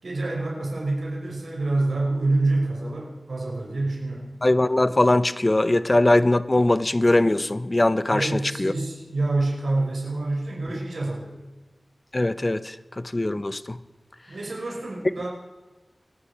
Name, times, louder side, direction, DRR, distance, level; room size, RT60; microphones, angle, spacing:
voice 1, 0.0-4.3 8.1-11.3 14.3-15.3, right 2 dB, 75° right, -3 dB, 5.1 m, -27 dB
voice 2, 4.4-8.7 12.1-13.8, left 1 dB, 30° left, 14 dB, 0.7 m, -21 dB
27.0 x 9.9 x 4.8 m, 1.2 s
wide cardioid pair, 75°, 0 cm